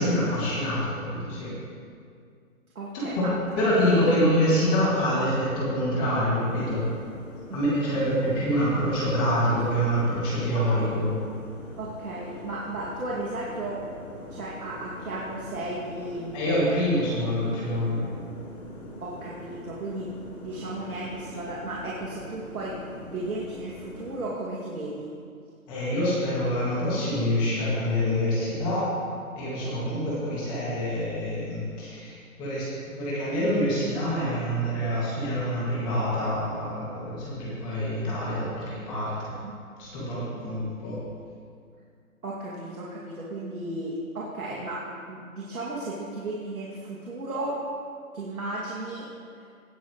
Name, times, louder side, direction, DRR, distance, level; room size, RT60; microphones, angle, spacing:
voice 1, 0.0-1.5 2.9-3.3 3.6-6.8 7.5-11.1 16.3-18.1 25.7-28.9 29.4-39.3 39.8-41.0, equal, 10° left, -8 dB, 2.0 m, -26 dB
voice 2, 2.7-3.3 4.1-4.2 7.5-7.7 11.8-13.8 14.3-16.6 19.0-20.1 20.4-25.1 39.4-39.5 40.8-41.0 42.2-44.8 45.1-47.6 48.1-49.1, right 2 dB, 80° right, -5 dB, 2.4 m, -34 dB
sound 1, 6.4-24.3, left 1 dB, 25° left, 2.5 m, -43 dB
17.5 x 8.5 x 3.1 m, 2.2 s
hypercardioid pair, 170°, 43 cm